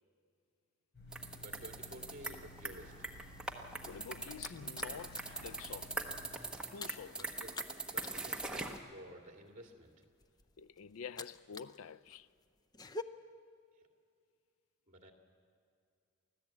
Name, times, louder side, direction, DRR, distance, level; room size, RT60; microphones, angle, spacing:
sound 1, 0.9-6.3, equal, 50° left, 5.5 m, -55 dB
sound 2, 1.1-8.8, right 2 dB, 5° right, 1.1 m, -42 dB
voice 1, 1.4-2.9 7.1-7.5 7.9-9.9 14.9-15.1, equal, 35° right, 2.2 m, -52 dB
voice 2, 3.8-5.9 6.7-7.2 10.6-12.3, left 6 dB, 75° left, 0.4 m, -48 dB
sound 3, 4.4-5.4 5.7-6.0 6.2-11.8 12.1-13.0, left 3 dB, 20° left, 0.5 m, -48 dB
24.0 x 15.5 x 8.4 m
head